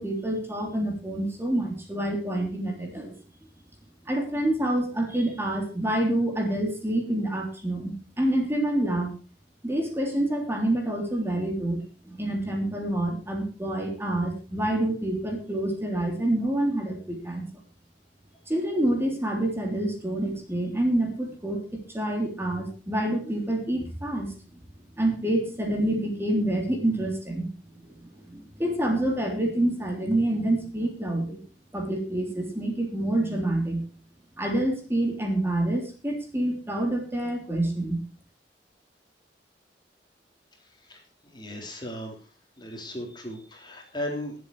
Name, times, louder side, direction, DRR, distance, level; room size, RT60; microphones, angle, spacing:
voice 1, 0.0-3.2 4.1-9.1 9.6-11.8 12.0-17.5 18.5-24.3 25.0-27.5 27.8-31.4 31.7-33.8 34.4-38.0, right 1 dB, 15° right, 2 dB, 3.1 m, -27 dB
voice 2, 40.8-42.3 42.6-44.4, left 1 dB, 25° left, 2 dB, 3.4 m, -37 dB
20.0 x 8.0 x 4.7 m, 0.34 s
head